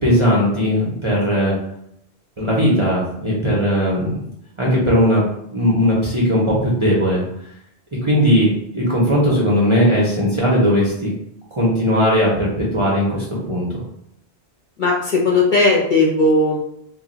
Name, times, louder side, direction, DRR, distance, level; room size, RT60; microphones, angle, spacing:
voice 1, 0.0-1.5 2.4-4.2 4.6-5.2 5.5-7.2 8.0-8.5 8.7-11.1 11.6-13.7, equal, 35° right, -6 dB, 0.6 m, -18 dB
voice 2, 14.8-16.6, left 2 dB, 50° left, -4 dB, 0.8 m, -16 dB
2.3 x 2.2 x 3.8 m, 0.73 s
omnidirectional pair, 1.2 m